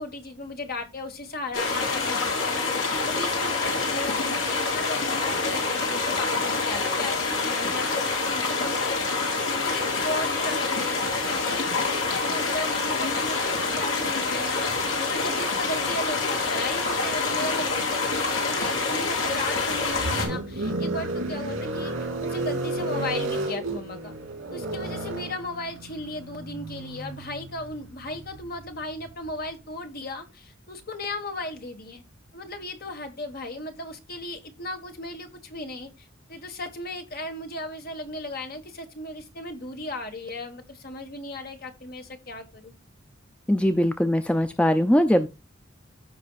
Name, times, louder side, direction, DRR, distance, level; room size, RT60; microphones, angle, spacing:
voice 1, 0.0-8.9 9.2-14.6 15.1-24.1 24.5-32.0 32.3-42.7, left 2 dB, 50° left, 1.5 m, -36 dB
sound 1, 1.5-20.3, left 3 dB, 70° left, 2.8 m, -26 dB
sound 2, 19.2-29.5, right 2 dB, 80° right, 3.1 m, -32 dB
voice 2, 43.5-45.3, equal, 5° left, 0.4 m, -21 dB
14.5 x 5.4 x 2.4 m
head